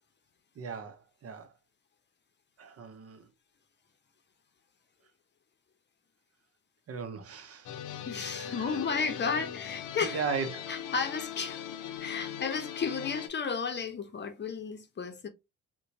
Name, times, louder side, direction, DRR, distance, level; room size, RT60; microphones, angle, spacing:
voice 1, 0.6-1.5 2.6-3.3 6.9-7.8 8.3-8.8 9.2-9.4 10.0-10.8, right 5 dB, 50° right, 0.7 m, -37 dB
sound 1, 7.6-13.3, left 9 dB, 80° left, 0.6 m, -40 dB
voice 2, 8.1-10.2 10.7-11.6 12.0-15.3, left 5 dB, 35° left, 0.7 m, -33 dB
4.2 x 2.2 x 2.7 m
cardioid pair, 90°, 30 cm